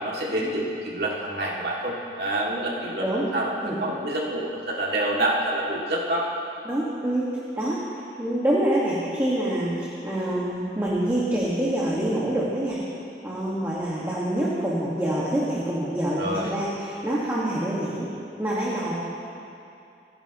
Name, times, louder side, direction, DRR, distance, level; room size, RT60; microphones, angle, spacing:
voice 1, 0.0-6.3 16.2-16.6, right 1 dB, 65° right, -4 dB, 2.4 m, -27 dB
voice 2, 3.0-3.3 3.6-3.8 6.6-7.3 7.6-7.8 8.2-9.7 10.0-12.8 13.2-18.1 18.4-18.9, right 1 dB, 15° right, -7 dB, 1.7 m, -26 dB
27.5 x 11.0 x 3.0 m, 2.6 s
head